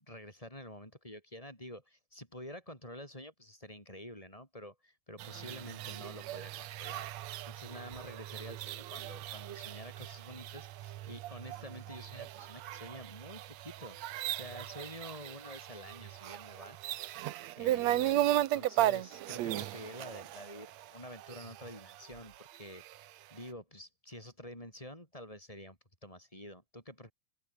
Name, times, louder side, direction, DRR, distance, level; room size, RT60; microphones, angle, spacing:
voice 1, 0.0-16.8 17.1-17.2 17.6-22.8 23.3-27.1, left 1 dB, 10° left, 8.0 m, -48 dB
sound 1, 5.2-23.0, right 14 dB, 70° right, 2.0 m, -37 dB
omnidirectional pair, 3.4 m